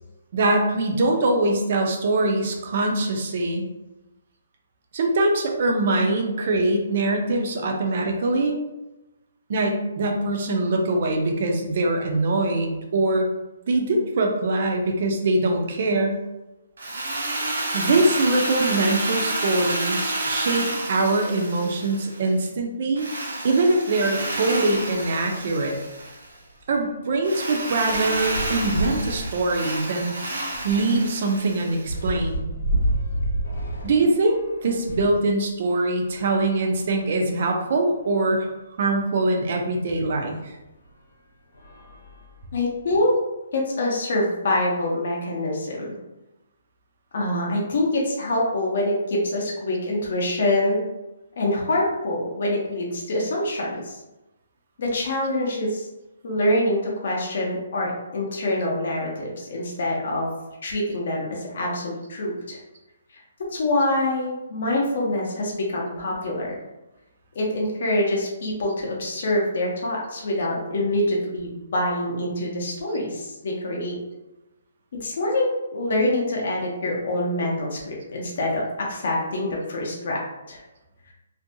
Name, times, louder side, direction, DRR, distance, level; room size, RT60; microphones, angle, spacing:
voice 1, 0.3-3.7 4.9-8.6 9.5-13.3 13.7-16.2 17.7-23.1 23.4-25.8 26.7-30.1 30.6-32.4 33.8-38.5 38.8-40.5, right 2 dB, 40° right, 2 dB, 0.4 m, -23 dB
Drill, 16.8-22.3 23.0-26.3 27.2-32.0, right 1 dB, 90° right, 0.7 m, -30 dB
sound 1, 24.8-24.9 25.3-25.5 25.7-35.2 35.9-37.3 38.0-38.1 38.3-38.4 40.1-40.2 40.9-41.1 41.5-42.8, right 1 dB, 85° left, 0.9 m, -31 dB
voice 2, 42.5-43.1 43.5-45.9 47.1-50.8 51.4-54.0 54.8-55.9 56.2-60.3 60.6-62.6 63.1-63.2 63.5-66.6 67.3-74.0 75.0-80.2 80.5-80.6, left 1 dB, 50° left, -2 dB, 0.6 m, -25 dB
2.5 x 2.2 x 2.6 m, 0.99 s
hypercardioid pair, 175°, 0 cm